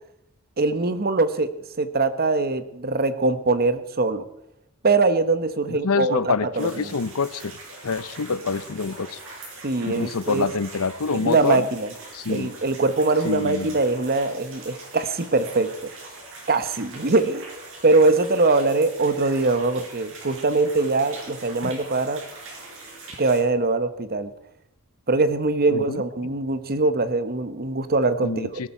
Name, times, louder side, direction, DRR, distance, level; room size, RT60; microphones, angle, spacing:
voice 1, 0.6-1.5 1.8-4.2 4.8-6.8 9.6-10.5 11.1-11.9 12.3-15.9 16.5-17.4 17.8-22.2 23.2-24.3 25.1-28.5, right 3 dB, 45° right, 12 dB, 1.1 m, -22 dB
voice 2, 5.7-7.5 7.8-9.2 9.8-11.7 12.1-12.5 13.2-13.8 21.6-21.7 25.7-26.0 28.2-28.7, left 4 dB, 90° left, 17 dB, 0.7 m, -26 dB
sound 1, 6.5-23.4, right 3 dB, 65° right, 5.6 m, -42 dB
17.5 x 13.0 x 4.4 m, 0.78 s
head